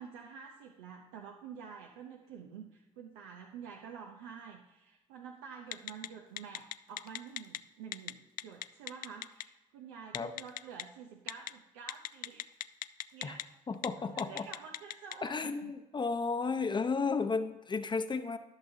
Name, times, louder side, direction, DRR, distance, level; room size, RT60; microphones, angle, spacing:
voice 1, 0.0-12.5 13.1-13.4 14.1-15.7, right 6 dB, 90° right, 2 dB, 0.6 m, -49 dB
Telephone, 5.7-6.1 6.4-7.6 7.9-8.1 8.4-9.4 10.1-10.8 11.3-11.5 11.9-13.4 13.7-13.9 14.2-15.1, left 14 dB, 65° left, 0.4 m, -37 dB
voice 2, 13.7-14.4 15.2-18.4, left 4 dB, 30° left, 8 dB, 0.7 m, -33 dB
14.5 x 6.0 x 2.7 m, 1.0 s
supercardioid pair, 65°, 16 cm